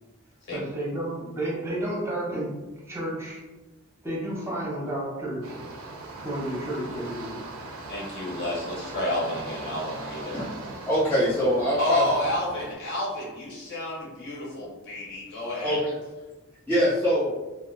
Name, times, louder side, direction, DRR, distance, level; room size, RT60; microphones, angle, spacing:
voice 1, 0.5-2.5 2.8-3.4 4.0-5.6 6.2-7.4, right 1 dB, 15° right, -7 dB, 0.7 m, -31 dB
sound 1, 5.4-12.7, right 3 dB, 75° right, 0.4 m, -40 dB
voice 2, 7.9-10.5 11.8-15.8, left 1 dB, 60° left, -6 dB, 1.0 m, -30 dB
voice 3, 10.9-12.0 15.6-15.9 16.7-17.3, equal, 10° left, -9 dB, 0.3 m, -23 dB
2.5 x 2.1 x 2.4 m, 1.1 s
head